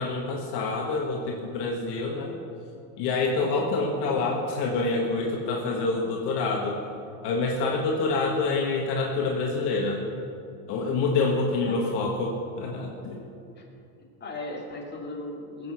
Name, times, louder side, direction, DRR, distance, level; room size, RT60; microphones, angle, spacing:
voice 1, 0.0-2.4 3.0-6.8 7.2-10.0 10.7-13.2, left 3 dB, 50° left, -1 dB, 1.8 m, -27 dB
voice 2, 4.1-4.4 11.6-12.1 13.6-13.7 14.2-15.7, left 2 dB, 20° left, -3 dB, 2.8 m, -38 dB
19.0 x 8.2 x 5.9 m, 2.6 s
supercardioid pair, 135°, 50 cm